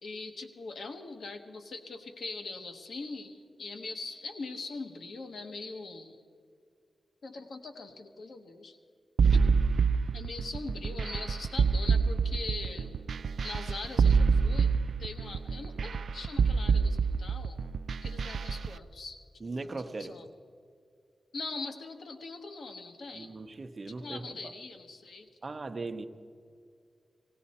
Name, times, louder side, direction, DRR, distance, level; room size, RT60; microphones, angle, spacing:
voice 1, 0.0-6.2 7.2-8.8 9.3-9.4 10.1-13.0 13.4-14.7 15.0-17.6 18.0-19.2 19.7-20.3 21.3-23.3 24.0-25.3, left 3 dB, 90° left, 5 dB, 1.1 m, -42 dB
sound 1, 9.2-18.7, right 5 dB, 75° right, 0.3 m, -26 dB
voice 2, 19.4-20.2 23.1-24.5 25.4-26.1, right 3 dB, 35° right, 6 dB, 0.8 m, -39 dB
18.0 x 17.5 x 4.2 m, 2.2 s
wide cardioid pair, 145°, 0 cm